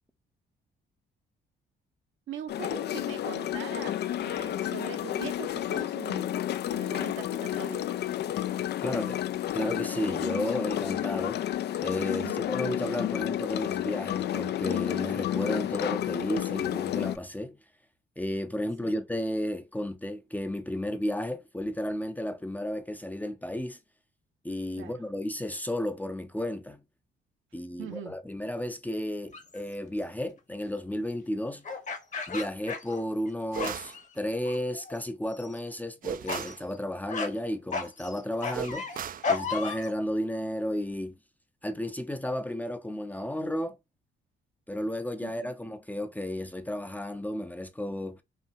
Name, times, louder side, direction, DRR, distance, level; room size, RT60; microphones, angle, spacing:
voice 1, 2.3-8.0 12.1-12.5 18.8-19.0 24.8-25.0 27.8-28.1 45.2-45.5, right 8 dB, 80° right, 1.1 m, -42 dB
sound 1, 2.5-17.2, left 12 dB, 55° left, 0.4 m, -31 dB
voice 2, 8.8-9.2 9.5-11.4 11.8-17.6 18.2-23.8 24.4-26.8 27.5-31.6 32.3-39.0 39.3-41.2 41.6-43.8 44.7-48.2, left 1 dB, 10° left, 0.6 m, -33 dB
sound 2, 29.3-29.6 31.6-33.3 33.5-34.1 34.5-35.0 35.3-35.6 36.3-36.5 37.1-37.3 37.7-39.9, left 5 dB, 40° left, 1.1 m, -34 dB
sound 3, 33.5-34.0 36.0-36.6 38.5-39.3, right 8 dB, 45° right, 0.4 m, -36 dB
5.6 x 2.1 x 2.6 m
cardioid pair, 90°, 20 cm